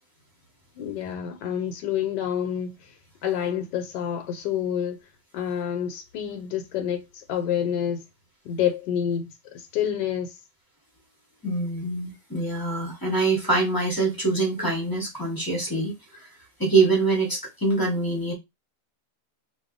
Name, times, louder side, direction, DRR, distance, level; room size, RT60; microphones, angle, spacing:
voice 1, 0.8-5.0 5.3-8.0 8.4-10.4, left 9 dB, 80° left, 1.2 m, -28 dB
voice 2, 11.4-15.9 16.6-18.3, right 3 dB, 15° left, 0.7 m, -24 dB
2.6 x 2.3 x 3.7 m
omnidirectional pair, 1.8 m